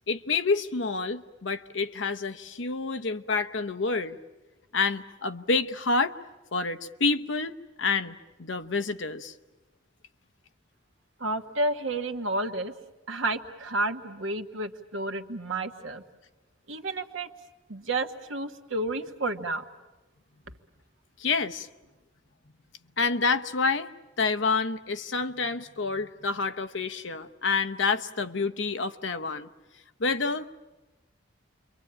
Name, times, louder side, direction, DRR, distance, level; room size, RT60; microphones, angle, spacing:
voice 1, 0.1-4.2 4.7-6.2 6.5-9.3 21.2-21.7 23.0-23.9 24.2-29.5 30.0-30.5, left 4 dB, 70° left, 10 dB, 0.9 m, -28 dB
voice 2, 11.2-12.7 13.1-16.0 16.7-17.3 17.7-19.6, right 2 dB, 85° right, 6 dB, 1.5 m, -31 dB
28.5 x 23.5 x 8.8 m, 1.1 s
head